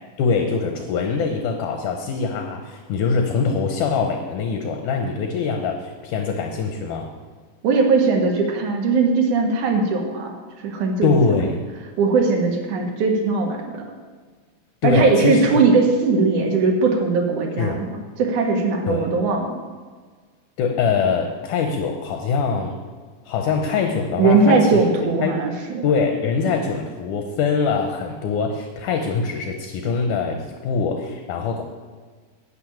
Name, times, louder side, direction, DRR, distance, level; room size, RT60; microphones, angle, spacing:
voice 1, 0.2-7.1 11.0-11.6 14.8-15.6 17.6-17.8 18.9-19.1 20.6-22.8 23.3-24.8 25.2-25.4 25.8-31.7, left 5 dB, 75° left, 4 dB, 2.3 m, -23 dB
voice 2, 7.6-10.4 10.6-11.1 12.0-13.8 14.8-17.9 18.2-19.5 24.2-25.8, right 4 dB, 65° right, 2 dB, 2.8 m, -19 dB
11.0 x 5.8 x 8.6 m, 1.5 s
omnidirectional pair, 3.8 m